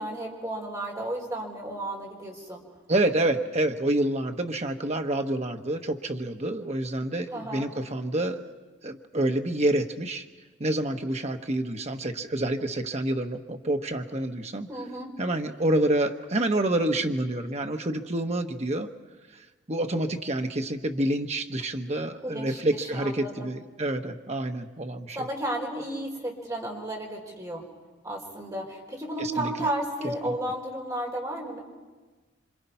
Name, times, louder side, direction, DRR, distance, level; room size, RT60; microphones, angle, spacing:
voice 1, 0.0-2.6 7.3-7.7 14.7-15.1 22.2-22.6 22.9-23.5 25.1-27.6 28.0-31.6, right 1 dB, 20° right, -1 dB, 4.5 m, -33 dB
voice 2, 2.9-8.4 8.8-10.2 10.6-14.7 15.2-18.9 19.7-25.3 29.2-29.7 30.2-30.3, right 1 dB, 35° right, 5 dB, 1.3 m, -28 dB
27.5 x 26.0 x 5.7 m, 1.3 s
head